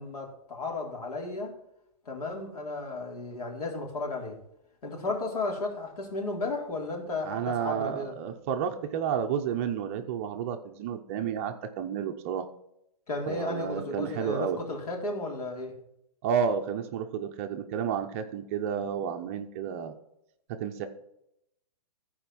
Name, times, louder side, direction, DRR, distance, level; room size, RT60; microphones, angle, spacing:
voice 1, 0.0-1.5 2.1-4.4 4.8-8.2 13.1-15.8, left 2 dB, 80° left, 0 dB, 3.7 m, -34 dB
voice 2, 7.2-12.5 13.3-14.6 16.2-19.9 20.5-20.9, right 8 dB, 20° right, 6 dB, 0.5 m, -31 dB
14.0 x 5.0 x 6.1 m, 0.79 s
hypercardioid pair, 170°, 19 cm